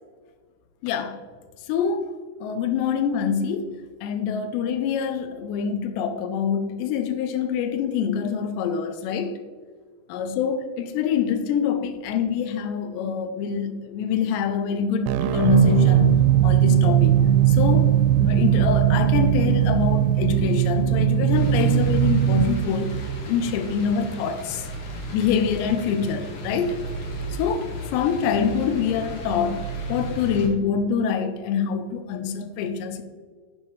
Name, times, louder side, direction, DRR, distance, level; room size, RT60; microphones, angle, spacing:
voice 1, 0.8-1.2 1.7-2.1 2.4-9.4 10.1-17.2 17.5-17.9 18.2-22.9 23.3-24.6 25.1-26.9 27.4-27.7 27.9-33.0, left 7 dB, 85° left, 2.9 m, -25 dB
sound 1, 15.1-23.8, right 11 dB, 85° right, 2.7 m, -19 dB
sound 2, 21.3-30.5, equal, 60° left, 2.4 m, -35 dB
10.5 x 7.2 x 3.1 m
omnidirectional pair, 5.0 m